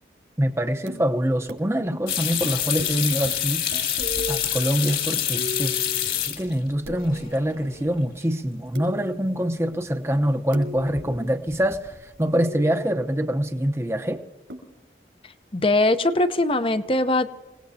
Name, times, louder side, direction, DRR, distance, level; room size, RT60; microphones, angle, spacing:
voice 1, 0.4-3.8 4.3-5.7 6.3-14.2, equal, 15° right, 6 dB, 0.8 m, -25 dB
sound 1, 0.9-1.1 1.5-1.6 1.9-2.5 2.8-3.0 3.2-3.3 3.7-4.4 5.4-6.3 6.9-7.9 8.8-9.5 10.5-11.4 12.3-13.2 14.5-14.6, left 1 dB, 85° right, 4.9 m, -36 dB
sound 2, 2.1-6.7 7.0-7.6 8.0-8.1 10.8-11.2 11.5-12.0, left 10 dB, 55° left, 2.3 m, -27 dB
voice 2, 15.5-17.3, left 2 dB, 30° left, 11 dB, 0.8 m, -21 dB
27.5 x 18.0 x 2.8 m, 1.2 s
head